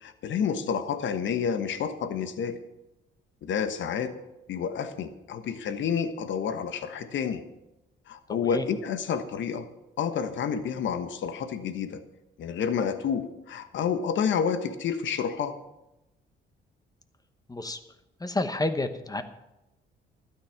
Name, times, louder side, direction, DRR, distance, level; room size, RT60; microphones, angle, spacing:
voice 1, 0.0-2.6 3.4-4.1 4.5-7.4 8.1-9.7 10.0-12.0 12.4-15.5, left 7 dB, 70° left, 10 dB, 1.3 m, -29 dB
voice 2, 8.3-8.7 17.5-17.8 18.2-19.2, left 2 dB, 20° left, 9 dB, 1.0 m, -30 dB
12.5 x 9.6 x 5.9 m, 0.93 s
cardioid pair, 90°, 20 cm